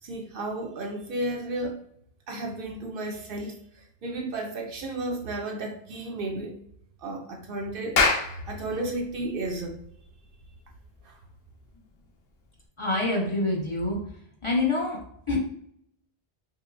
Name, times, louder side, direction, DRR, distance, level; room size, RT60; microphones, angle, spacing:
voice 1, 0.0-1.8 2.3-6.6 7.0-9.8 11.0-11.2, right 2 dB, 65° right, 2 dB, 0.7 m, -33 dB
Clapping, 7.7-12.6, left 4 dB, 70° left, 0.9 m, -29 dB
voice 2, 12.8-14.0 14.4-15.0 15.3-15.4, left 2 dB, 35° left, -2 dB, 0.7 m, -26 dB
5.4 x 2.0 x 2.5 m, 0.68 s
omnidirectional pair, 1.1 m